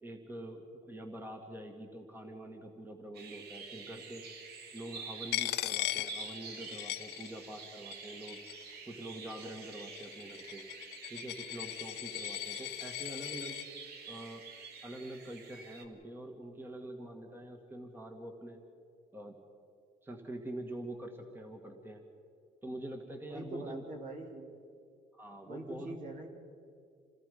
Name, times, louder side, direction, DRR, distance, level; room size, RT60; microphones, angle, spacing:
voice 1, 0.0-4.2 4.7-8.4 8.9-10.6 11.1-13.6 14.1-14.4 14.8-18.6 19.1-19.4 20.0-22.0 22.6-23.8 25.1-26.0, right 1 dB, 10° right, 3 dB, 2.0 m, -45 dB
sound 1, 3.1-15.9, right 5 dB, 70° right, 2.2 m, -48 dB
Coin (dropping), 5.3-7.6 7.9-8.7 9.4-13.7, left 18 dB, 85° left, 0.6 m, -39 dB
voice 2, 23.3-24.5 25.4-26.3, right 2 dB, 50° right, 3 dB, 3.4 m, -44 dB
27.5 x 18.0 x 5.5 m, 2.5 s
cardioid pair, 110°, 17 cm